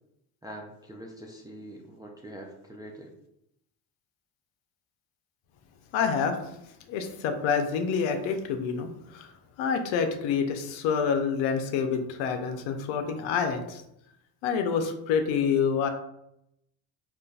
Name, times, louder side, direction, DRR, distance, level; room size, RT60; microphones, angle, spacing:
voice 1, 0.4-3.1, right 1 dB, 10° right, -1 dB, 0.3 m, -44 dB
voice 2, 5.9-6.4 6.9-9.3 9.6-13.8 14.4-15.9, left 6 dB, 70° left, 6 dB, 0.7 m, -27 dB
3.8 x 2.5 x 2.3 m, 0.81 s
supercardioid pair, 70°, 50 cm